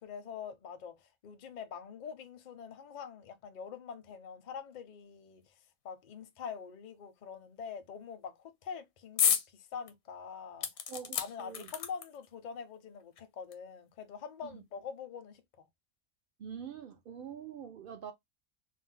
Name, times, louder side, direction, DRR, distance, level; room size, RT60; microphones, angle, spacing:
voice 1, 0.0-5.6 5.8-10.7 11.1-15.4, left 6 dB, 55° left, 0.5 m, -45 dB
sound 1, 9.2-9.5 9.9-10.0 10.6-12.3 13.2-13.3 13.5-13.6, left 8 dB, 80° left, 1.1 m, -31 dB
voice 2, 10.9-11.7 14.4-14.6 16.4-18.1, right 7 dB, 70° right, 0.5 m, -45 dB
2.5 x 2.0 x 3.7 m
omnidirectional pair, 1.5 m